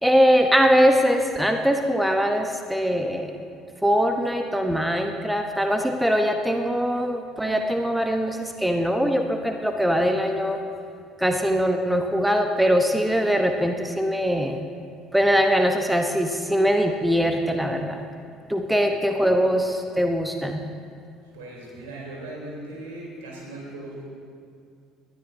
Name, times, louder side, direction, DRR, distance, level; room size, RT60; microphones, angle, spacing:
voice 1, 0.0-3.4 3.8-10.6 11.2-14.6 15.1-18.0 18.5-20.6, equal, 5° right, 5 dB, 0.9 m, -22 dB
voice 2, 18.7-19.4 21.3-24.0, right 2 dB, 70° right, -2 dB, 3.4 m, -39 dB
20.0 x 13.0 x 2.7 m, 2.4 s
figure-of-eight pair, 55°, 0 cm